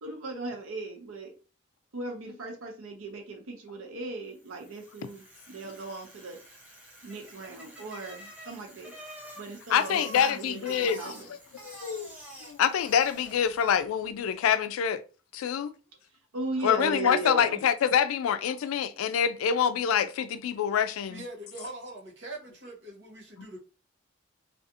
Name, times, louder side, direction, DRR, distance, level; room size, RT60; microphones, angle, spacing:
voice 1, 0.0-1.3 1.9-6.4 7.0-8.9 9.4-11.3 16.3-17.6, right 3 dB, 85° right, 0.6 m, -38 dB
Bicycle, 4.4-13.9, right 1 dB, 5° right, 0.5 m, -47 dB
voice 2, 9.7-11.1 11.6-12.1 12.5-15.0 15.3-15.7 16.6-21.2, left 8 dB, 90° left, 0.3 m, -26 dB
voice 3, 21.1-23.6, right 1 dB, 60° right, 0.9 m, -42 dB
2.5 x 2.4 x 2.7 m
head